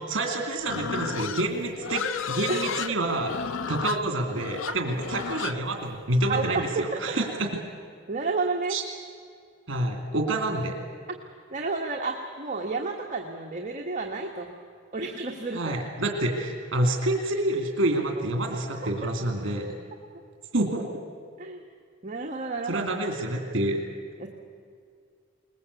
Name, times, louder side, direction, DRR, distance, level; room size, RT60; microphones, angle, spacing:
voice 1, 0.0-3.3 3.7-7.5 8.7-8.8 9.7-10.7 15.5-19.7 20.5-20.9 22.7-23.8, right 1 dB, 65° right, 3 dB, 2.5 m, -28 dB
Livestock farm animals working animals, 0.6-6.7, left 7 dB, 70° left, 0.5 m, -33 dB
voice 2, 6.3-7.2 8.1-8.8 11.5-14.5 14.9-15.6 18.7-19.1 21.4-21.6 22.0-22.9 24.2-24.3, right 3 dB, 40° right, 1 dB, 1.5 m, -31 dB
21.5 x 20.0 x 8.3 m, 2.2 s
head